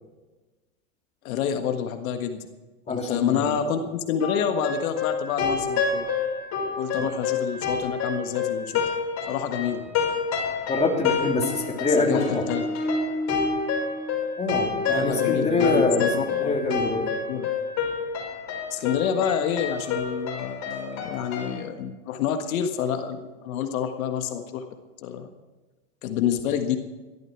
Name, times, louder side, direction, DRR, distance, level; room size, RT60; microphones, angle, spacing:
voice 1, 1.2-2.5 2.9-6.1 6.8-8.8 9.3-9.8 11.9-12.7 14.9-16.6 17.3-17.5 18.7-24.6 25.0-25.3 26.0-26.8, left 8 dB, 70° left, 6 dB, 1.7 m, -28 dB
voice 2, 2.9-3.6 7.0-7.1 10.7-12.4 14.4-17.0, left 3 dB, 15° left, 1 dB, 3.2 m, -25 dB
sound 1, 4.2-21.6, left 5 dB, 40° left, 6.1 m, -28 dB
18.0 x 13.5 x 4.7 m, 1.2 s
hypercardioid pair, 115°, 43 cm